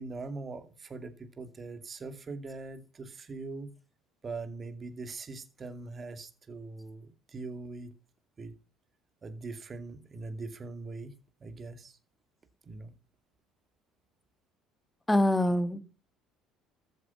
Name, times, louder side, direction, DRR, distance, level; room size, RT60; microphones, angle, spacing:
voice 1, 0.0-3.7 4.2-7.9 8.4-8.6 9.2-11.1 11.4-12.0 12.6-12.9, right 3 dB, 35° right, 2.5 m, -41 dB
voice 2, 15.1-15.8, left 1 dB, 10° left, 1.8 m, -24 dB
14.5 x 8.2 x 5.9 m
hypercardioid pair, 60°, 0 cm